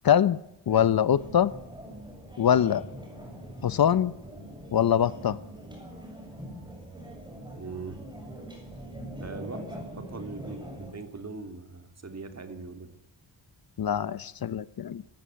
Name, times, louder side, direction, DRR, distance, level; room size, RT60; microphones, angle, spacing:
voice 1, 0.0-0.4 0.7-1.5 2.4-2.9 3.6-4.1 4.7-5.4 13.8-15.0, left 9 dB, 60° left, 17 dB, 0.8 m, -23 dB
sound 1, 1.1-10.9, equal, 10° right, 7.5 m, -43 dB
voice 2, 7.5-8.0 8.9-12.9, right 4 dB, 35° right, 7 dB, 3.3 m, -41 dB
23.5 x 15.0 x 9.4 m, 0.85 s
wide cardioid pair, 120°, 42 cm